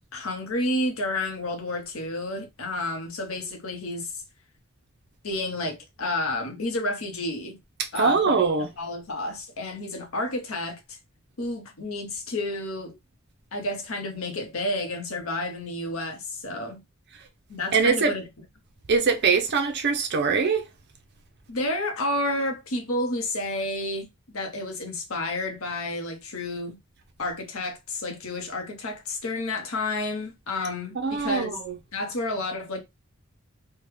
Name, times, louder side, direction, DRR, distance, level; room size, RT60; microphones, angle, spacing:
voice 1, 0.1-4.2 5.2-7.6 7.9-11.0 11.4-13.0 13.5-16.8 17.5-18.3 21.5-26.8 27.2-31.6 31.9-32.8, left 1 dB, 75° left, 0.9 m, -30 dB
voice 2, 7.9-8.7 17.7-18.1 18.9-20.6 30.9-31.8, right 5 dB, 55° right, 0.6 m, -23 dB
3.4 x 2.2 x 3.2 m
head